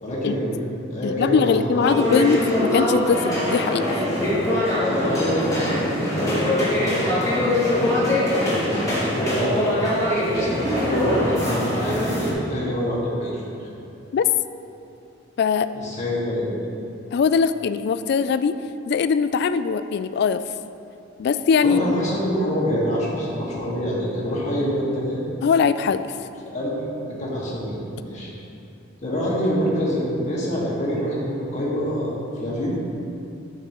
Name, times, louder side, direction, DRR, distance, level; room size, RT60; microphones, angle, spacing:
voice 1, 0.0-2.2 4.9-8.0 8.9-9.8 10.2-13.7 15.7-16.7 21.6-25.2 26.5-26.8 27.1-27.8 28.1-28.3 29.0-32.1 32.4-32.8, equal, 40° left, -6 dB, 1.9 m, -26 dB
voice 2, 1.0-4.0 14.1-14.3 15.4-15.7 17.1-18.6 18.9-20.4 21.2-22.1 25.4-26.0, left 6 dB, 60° left, 13 dB, 0.3 m, -21 dB
sound 1, 1.8-12.3, left 1 dB, 20° left, 1.9 m, -23 dB
11.5 x 5.9 x 3.1 m, 2.7 s
head